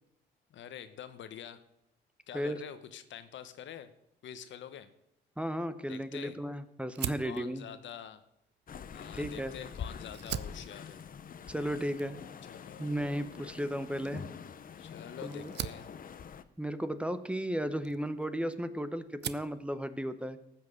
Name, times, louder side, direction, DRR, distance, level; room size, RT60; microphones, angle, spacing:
voice 1, 0.5-1.6 2.3-3.9 4.2-4.9 5.9-6.4 7.2-8.2 8.9-11.0 12.5-12.9 14.8-15.9, left 9 dB, 70° left, 11 dB, 1.0 m, -46 dB
voice 2, 5.4-7.7 9.1-9.5 11.5-12.2 12.8-14.2 15.2-15.4 16.6-20.4, equal, 5° right, 11 dB, 0.8 m, -34 dB
Fire, 6.9-9.6 10.0-18.7 19.0-19.6, right 10 dB, 60° right, 0.6 m, -44 dB
sound 1, 8.7-16.4, left 7 dB, 45° left, 0.7 m, -45 dB
14.0 x 6.1 x 7.7 m, 0.80 s
cardioid pair, 90°, 20 cm